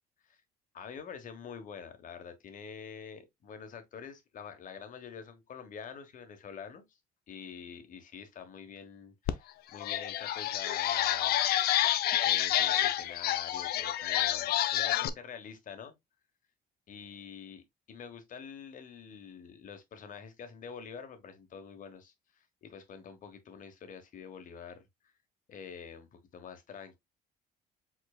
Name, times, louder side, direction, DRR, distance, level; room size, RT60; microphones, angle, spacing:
voice 1, 0.7-7.0 7.3-11.5 11.9-15.9 16.9-17.6 17.9-24.9 25.5-27.0, left 6 dB, 50° left, 1.2 m, -47 dB
sound 1, 9.3-9.4 9.7-15.1, left 12 dB, 65° left, 0.5 m, -28 dB
4.9 x 3.8 x 2.3 m
cardioid pair, 110°, 17 cm